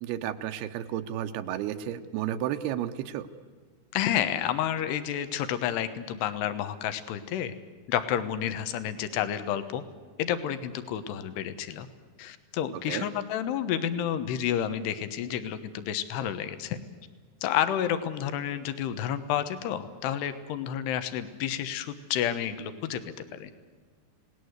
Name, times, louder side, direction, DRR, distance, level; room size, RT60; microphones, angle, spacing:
voice 1, 0.0-3.3 12.9-13.1, right 11 dB, 80° right, 8 dB, 2.9 m, -32 dB
voice 2, 3.9-7.5 7.9-9.8 10.2-11.9 12.2-16.8 17.4-23.0 23.3-23.5, left 10 dB, 80° left, 11 dB, 3.3 m, -30 dB
29.5 x 18.5 x 8.0 m, 1.6 s
omnidirectional pair, 4.7 m